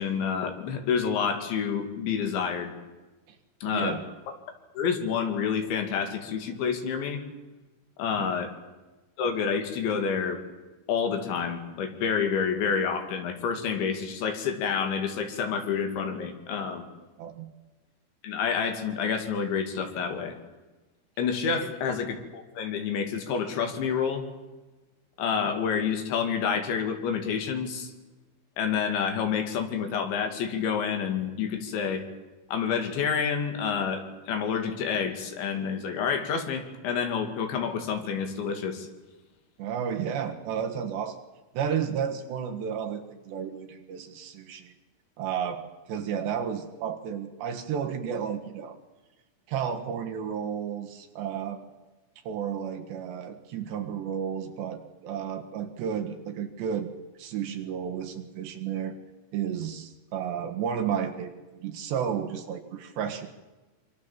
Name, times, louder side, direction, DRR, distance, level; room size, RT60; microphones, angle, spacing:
voice 1, 0.0-2.7 3.6-4.0 4.3-4.4 4.8-7.2 8.0-8.5 9.2-10.4 10.9-16.9 18.2-20.3 21.2-24.2 25.2-27.9 28.6-32.1 32.5-38.9, left 6 dB, 65° left, 6 dB, 4.6 m, -28 dB
voice 2, 3.7-4.0 8.2-8.4 17.2-17.5 21.6-21.7 39.6-41.2 41.6-44.7 45.2-45.6 45.9-48.8 49.5-51.6 52.3-56.9 57.2-59.0 59.3-63.3, right 8 dB, 65° right, 5 dB, 3.5 m, -32 dB
26.0 x 25.5 x 7.4 m, 1.2 s
omnidirectional pair, 5.7 m